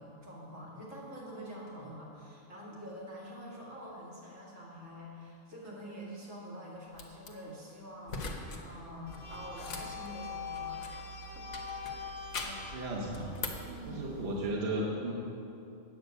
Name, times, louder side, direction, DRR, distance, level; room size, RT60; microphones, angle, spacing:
voice 1, 0.0-11.6 11.9-12.0 13.6-14.1, equal, 75° right, -6 dB, 2.9 m, -46 dB
sound 1, 6.9-7.3 8.1-8.6 8.9-11.1 11.5-12.7 13.1-13.7, left 3 dB, 70° left, 1.4 m, -41 dB
sound 2, 9.1-14.5, left 3 dB, 35° left, 1.1 m, -43 dB
voice 2, 12.3-13.3 13.9-15.1, right 1 dB, 55° right, -3 dB, 1.3 m, -35 dB
8.9 x 6.8 x 7.9 m, 2.7 s
omnidirectional pair, 1.3 m